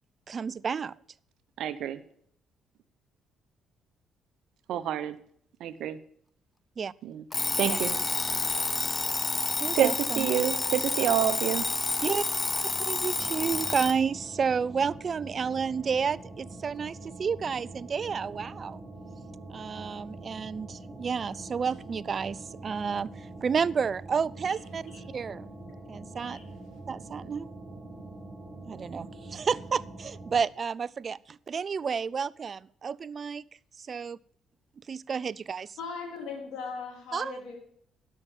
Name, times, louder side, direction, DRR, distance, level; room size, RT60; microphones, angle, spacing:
voice 1, 0.3-1.0 6.8-6.9 7.6-7.8 9.6-10.3 12.0-12.2 12.9-18.8 19.5-24.8 25.1-25.5 25.9-26.4 26.9-27.5 28.7-33.4 33.8-34.2 34.9-35.8 37.1-37.4, right 6 dB, 45° right, 22 dB, 0.4 m, -31 dB
voice 2, 1.6-2.0 4.7-5.2 5.6-6.0 7.0-7.2 7.6-8.0 9.7-9.9 10.2-11.7, right 11 dB, 70° right, 14 dB, 0.8 m, -27 dB
Alarm, 7.3-14.0, left 3 dB, 25° left, 0.3 m, -29 dB
sound 1, 13.1-30.4, right 2 dB, 10° right, 5.6 m, -44 dB
voice 3, 35.8-37.6, left 5 dB, 70° left, 2 dB, 3.1 m, -39 dB
12.5 x 5.7 x 6.9 m, 0.65 s
hypercardioid pair, 55°, 0 cm